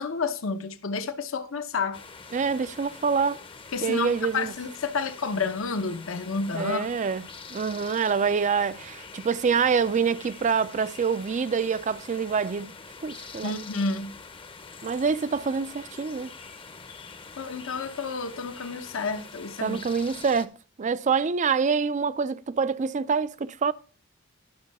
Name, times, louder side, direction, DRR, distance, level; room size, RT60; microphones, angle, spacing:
voice 1, 0.0-2.0 3.7-6.9 13.4-14.1 17.4-19.8, left 4 dB, 70° left, 0.8 m, -30 dB
sound 1, 1.9-20.5, left 4 dB, 25° left, 0.7 m, -45 dB
voice 2, 2.3-3.4 3.8-4.5 6.5-12.7 13.0-13.6 14.8-16.3 19.6-20.5 20.8-23.7, right 5 dB, 35° right, 0.4 m, -26 dB
11.5 x 6.3 x 4.1 m
head